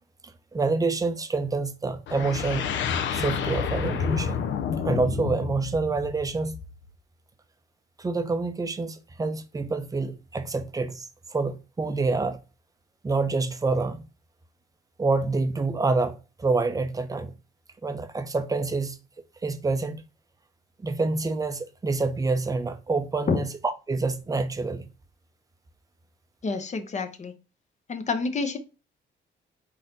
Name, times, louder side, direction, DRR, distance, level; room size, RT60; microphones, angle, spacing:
voice 1, 0.5-2.7 3.1-4.4 4.8-6.6 8.0-12.4 13.0-14.0 15.0-17.3 17.8-19.0 19.4-20.0 20.8-23.5 23.9-24.9, right 3 dB, 20° right, 0.6 m, -27 dB
sound 1, 2.1-6.9, left 7 dB, 75° left, 0.6 m, -29 dB
voice 2, 26.4-27.3 27.9-28.6, left 4 dB, 35° left, 0.7 m, -28 dB
4.0 x 2.7 x 3.8 m
cardioid pair, 90°, 20 cm